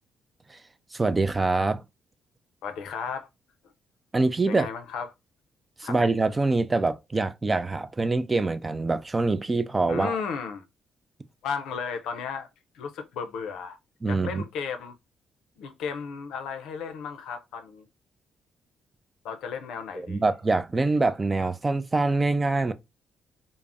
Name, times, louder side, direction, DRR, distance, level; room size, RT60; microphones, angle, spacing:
voice 1, 0.9-1.8 4.1-4.7 5.8-10.2 14.0-14.4 20.0-22.7, right 3 dB, 25° right, 0.3 m, -25 dB
voice 2, 2.6-3.3 4.5-5.1 5.8-6.0 9.9-10.7 11.4-12.5 12.7-13.8 14.1-15.0 15.6-17.9 19.2-20.3, left 6 dB, 85° left, 0.5 m, -34 dB
2.5 x 2.0 x 3.4 m
cardioid pair, 90°, 0 cm